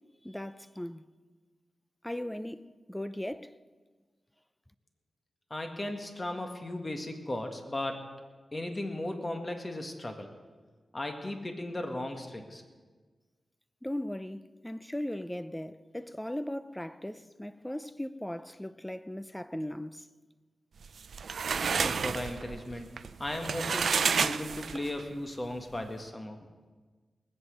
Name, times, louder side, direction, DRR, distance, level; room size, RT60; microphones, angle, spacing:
voice 1, 0.2-1.0 2.0-3.6 13.8-20.1, left 1 dB, 10° left, 0.5 m, -38 dB
voice 2, 5.5-8.0 8.5-10.3 10.9-12.6 21.8-22.9 23.2-26.4, left 1 dB, 30° left, 1.8 m, -36 dB
sound 1, 20.8-25.0, right 6 dB, 80° right, 0.4 m, -30 dB
20.0 x 8.2 x 6.5 m
cardioid pair, 70°, 0 cm